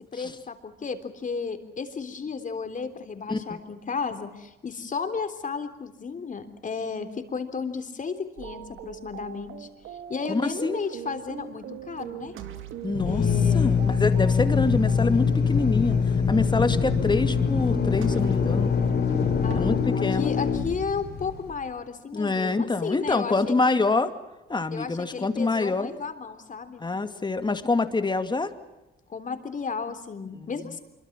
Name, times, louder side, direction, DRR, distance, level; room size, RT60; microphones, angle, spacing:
voice 1, 0.1-12.3 13.1-13.8 19.4-23.8 24.7-26.8 29.1-30.8, left 5 dB, 40° left, 8 dB, 3.6 m, -34 dB
sound 1, 8.4-19.6, right 9 dB, 85° right, 2.2 m, -41 dB
voice 2, 10.3-10.8 12.8-13.3 13.5-18.7 19.5-19.7 20.0-20.3 22.1-24.1 24.5-26.0 26.8-28.5 30.4-30.5, left 3 dB, 20° left, 9 dB, 2.4 m, -26 dB
Drill, 12.9-21.5, left 6 dB, 55° left, 4.4 m, -23 dB
25.5 x 23.5 x 7.4 m, 1.0 s
cardioid pair, 90°, 20 cm